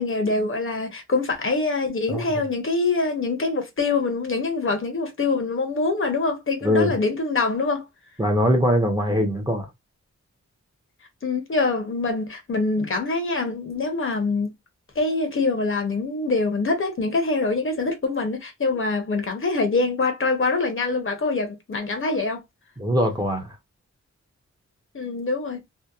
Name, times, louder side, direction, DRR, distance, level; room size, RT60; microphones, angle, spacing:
voice 1, 0.0-7.8 11.2-14.5 15.0-22.4 24.9-25.6, left 3 dB, 45° left, 0.7 m, -24 dB
voice 2, 6.6-7.0 8.2-9.7 22.8-23.6, equal, 15° right, 0.6 m, -22 dB
2.7 x 2.1 x 2.3 m
wide cardioid pair, 130°, 29 cm